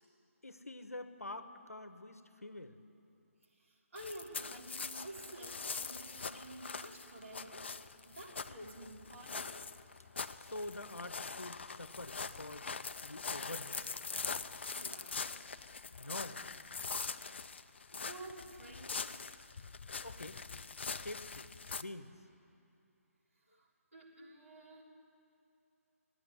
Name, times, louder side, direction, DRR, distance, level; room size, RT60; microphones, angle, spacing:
voice 1, 0.4-2.8 10.4-12.7 13.0-13.8 16.0-16.4 20.0-20.4 20.8-22.1, left 2 dB, 75° left, 9 dB, 1.0 m, -46 dB
voice 2, 3.5-7.8 8.1-9.6 14.7-15.4 17.5-19.2 23.5-24.8, right 1 dB, 60° right, -3 dB, 3.6 m, -51 dB
sound 1, 4.0-21.8, left 5 dB, 45° left, 0.4 m, -43 dB
16.0 x 9.6 x 9.5 m, 2.7 s
figure-of-eight pair, 145°, 8 cm